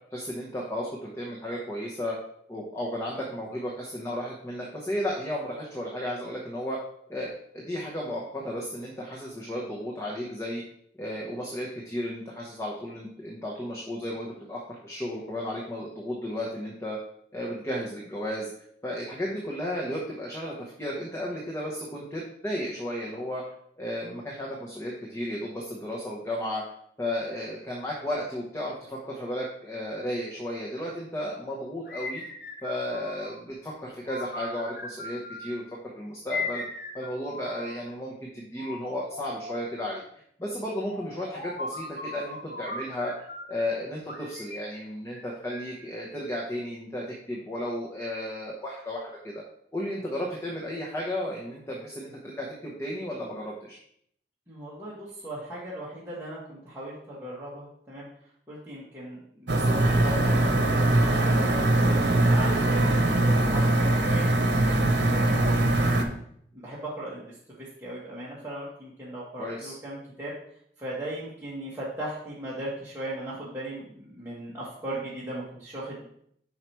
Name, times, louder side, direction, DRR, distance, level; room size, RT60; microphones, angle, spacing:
voice 1, 0.1-2.2 2.5-6.8 7.1-10.6 11.0-17.0 17.3-18.5 18.8-23.4 23.8-26.6 27.0-32.2 32.6-35.6 35.9-36.6 36.9-40.0 40.4-49.4 49.7-53.8 69.4-69.7, left 1 dB, 15° left, -4 dB, 0.9 m, -34 dB
sound 1, 31.8-33.5 34.0-35.6 36.3-37.9 38.6-39.8 40.9-43.6 44.1-45.9, left 2 dB, 60° left, 1.3 m, -38 dB
voice 2, 54.5-58.1 58.5-66.0 66.5-70.3 70.8-76.1, right 1 dB, 15° right, -9 dB, 1.3 m, -38 dB
sound 2, 59.5-66.0, right 1 dB, 80° right, 0.9 m, -22 dB
5.7 x 4.7 x 4.5 m, 0.68 s
head